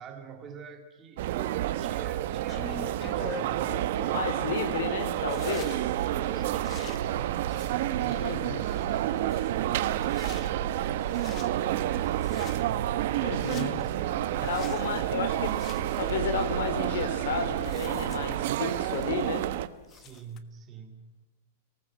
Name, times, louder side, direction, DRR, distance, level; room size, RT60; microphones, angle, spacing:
voice 1, 0.0-4.3 5.5-5.7 6.1-7.5 7.9-8.4 8.9-12.4 13.6-14.8 19.9-21.2, right 6 dB, 20° right, 5 dB, 2.3 m, -46 dB
sound 1, 1.2-19.7, right 13 dB, 50° right, 1.1 m, -30 dB
sound 2, 2.2-20.4, left 7 dB, 25° left, 1.4 m, -47 dB
voice 2, 4.1-5.7 8.2-8.6 13.2-13.8 14.4-15.6 16.0-19.5, left 5 dB, 65° left, 10 dB, 4.2 m, -32 dB
sound 3, 5.7-18.4, right 9 dB, 85° right, 2.6 m, -36 dB
30.0 x 19.0 x 7.3 m, 1.2 s
supercardioid pair, 170°, 0 cm